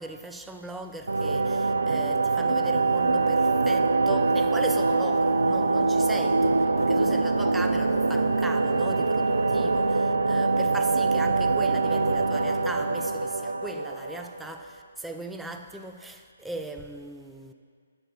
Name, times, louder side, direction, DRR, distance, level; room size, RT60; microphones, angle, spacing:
voice 1, 0.0-17.5, right 2 dB, 5° right, 0.3 m, -38 dB
sound 1, 1.1-14.6, right 3 dB, 85° right, 0.3 m, -24 dB
7.6 x 5.3 x 3.9 m
figure-of-eight pair, 140°, 0 cm